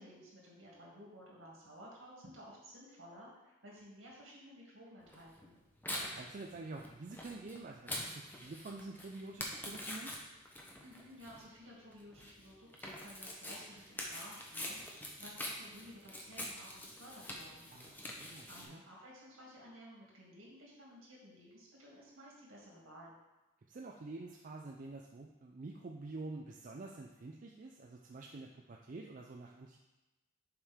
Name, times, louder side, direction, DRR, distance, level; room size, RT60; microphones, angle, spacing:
voice 1, 0.0-5.6 10.8-17.7 18.5-23.1, equal, 65° right, -4 dB, 2.3 m, -55 dB
Tearing, 5.1-18.7, left 1 dB, 10° left, 0.8 m, -45 dB
voice 2, 5.9-10.1 17.7-18.8 23.7-29.8, right 3 dB, 40° right, 1 dB, 0.4 m, -48 dB
7.1 x 5.2 x 3.6 m, 1.0 s
head